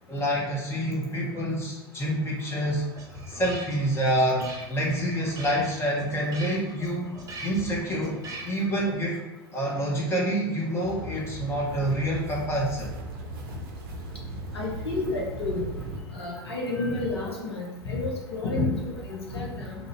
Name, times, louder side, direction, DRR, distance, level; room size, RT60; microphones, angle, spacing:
voice 1, 0.1-2.8 3.3-7.1 7.4-9.2 9.5-12.9, equal, 20° left, -3 dB, 0.9 m, -27 dB
sound 1, 2.4-9.0, right 2 dB, 25° right, 0.8 m, -42 dB
sound 2, 10.8-16.0, right 2 dB, 55° right, 0.6 m, -37 dB
voice 2, 14.5-15.7 16.1-19.8, left 2 dB, 80° left, -2 dB, 0.9 m, -30 dB
2.7 x 2.6 x 4.3 m, 1.2 s
figure-of-eight pair, 80°, 13 cm